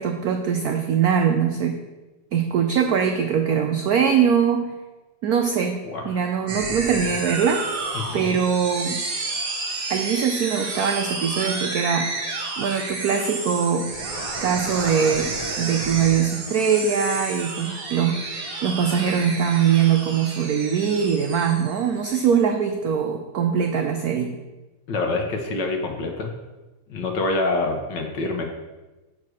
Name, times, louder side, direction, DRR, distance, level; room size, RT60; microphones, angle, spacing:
voice 1, 0.0-1.8 2.3-4.7 5.2-7.6 8.1-9.0 9.9-12.1 12.6-13.9 14.4-18.2 18.6-24.4, right 7 dB, 90° right, 4 dB, 0.8 m, -22 dB
sound 1, 6.5-22.3, right 3 dB, 45° right, 1.5 m, -31 dB
voice 2, 7.9-8.3 24.9-26.3 26.9-28.4, left 2 dB, 60° left, 3 dB, 1.4 m, -26 dB
7.5 x 4.7 x 6.2 m, 1.1 s
omnidirectional pair, 2.3 m